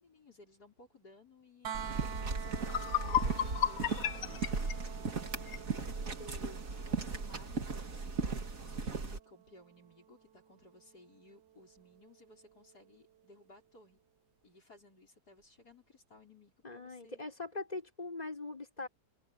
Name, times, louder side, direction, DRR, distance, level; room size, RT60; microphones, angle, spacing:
voice 1, 0.0-5.4 6.8-14.0 14.4-17.3, left 2 dB, 55° left, 6.4 m, -60 dB
sound 1, 1.6-13.5 15.4-15.5, right 9 dB, 85° right, 2.0 m, -50 dB
sound 2, 1.7-9.2, right 4 dB, 45° right, 2.4 m, -37 dB
sound 3, 2.2-2.3 2.6-5.7, left 11 dB, 70° left, 1.4 m, -34 dB
voice 2, 6.0-6.6 16.6-18.9, left 3 dB, 20° left, 6.0 m, -42 dB
omnidirectional pair, 2.0 m